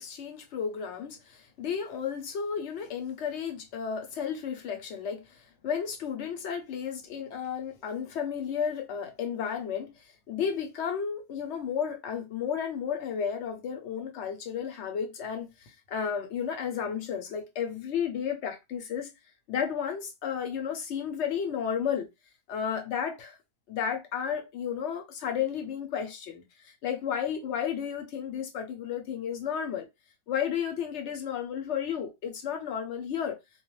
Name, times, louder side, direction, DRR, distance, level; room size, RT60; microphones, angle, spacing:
voice 1, 0.0-19.1 19.5-22.1 22.5-23.4 23.7-29.9 30.3-33.4, left 7 dB, 60° left, 0.8 m, -33 dB
2.3 x 2.1 x 3.0 m
omnidirectional pair, 1.5 m